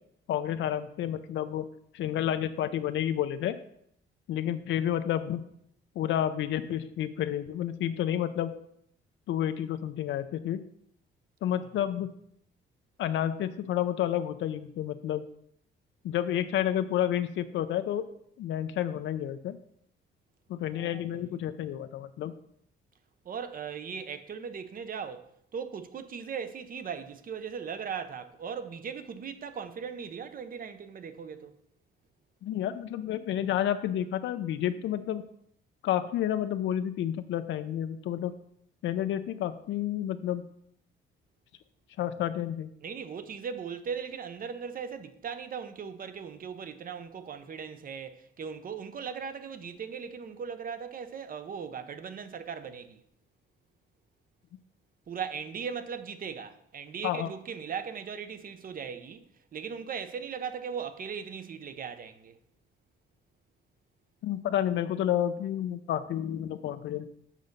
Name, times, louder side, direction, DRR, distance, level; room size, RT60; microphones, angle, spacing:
voice 1, 0.3-1.7 1.9-3.6 4.3-5.5 6.0-8.5 9.3-10.6 11.4-12.1 13.0-15.2 16.0-18.1 18.4-19.6 20.5-22.4 32.4-35.2 35.8-38.3 38.8-40.4 42.0-42.7 57.0-57.3 64.2-67.2, left 11 dB, 70° left, 0.5 m, -30 dB
voice 2, 23.2-31.5 42.8-53.0 55.1-59.2 59.5-62.4, right 6 dB, 45° right, 0.7 m, -38 dB
7.5 x 3.9 x 5.2 m
cardioid pair, 90°, 20 cm